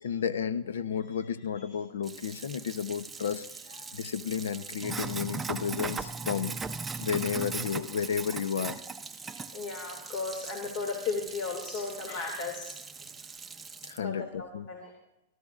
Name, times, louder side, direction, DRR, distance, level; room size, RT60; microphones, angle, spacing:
voice 1, 0.0-8.8 13.8-14.7, left 7 dB, 85° left, 14 dB, 0.8 m, -32 dB
Sink (filling or washing), 2.0-14.0, right 4 dB, 10° right, 0.6 m, -39 dB
voice 2, 9.1-12.7 14.0-14.9, left 4 dB, 45° left, 2 dB, 2.5 m, -35 dB
22.5 x 13.0 x 2.5 m, 0.89 s
hypercardioid pair, 125°, 0 cm